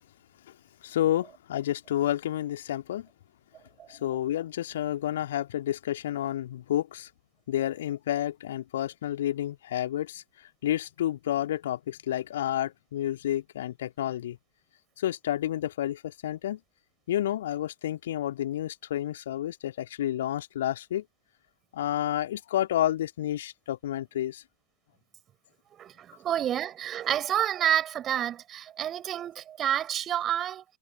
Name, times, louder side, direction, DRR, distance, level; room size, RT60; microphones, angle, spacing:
voice 1, 0.8-3.1 3.9-7.1 7.5-10.2 10.6-14.4 15.0-16.6 17.1-21.0 21.7-24.4, left 12 dB, 60° left, 2.5 m, -30 dB
voice 2, 25.8-30.6, right 10 dB, 30° right, 4.3 m, -29 dB
figure-of-eight pair, 90°, 0 cm